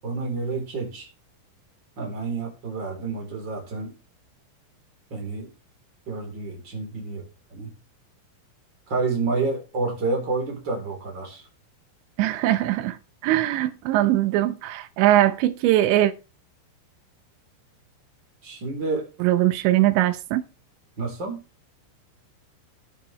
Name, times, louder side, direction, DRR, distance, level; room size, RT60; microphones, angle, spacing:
voice 1, 0.0-1.1 2.0-3.9 5.1-5.5 6.1-7.7 8.9-11.5 18.4-19.1 21.0-21.4, right 3 dB, 25° right, 3.6 m, -29 dB
voice 2, 12.2-13.0 13.2-16.1 19.2-20.4, right 14 dB, 85° right, 2.6 m, -21 dB
14.0 x 8.4 x 3.3 m
omnidirectional pair, 6.0 m